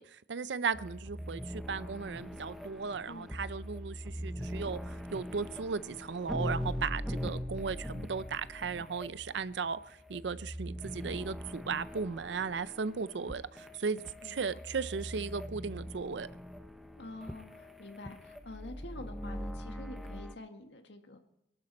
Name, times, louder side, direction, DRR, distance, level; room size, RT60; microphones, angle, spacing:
voice 1, 0.0-16.3, right 5 dB, 70° right, 0.5 m, -36 dB
sound 1, 0.7-20.4, equal, ahead, 0.8 m, -41 dB
voice 2, 17.0-21.2, left 2 dB, 70° left, 1.8 m, -47 dB
23.5 x 12.0 x 4.2 m
head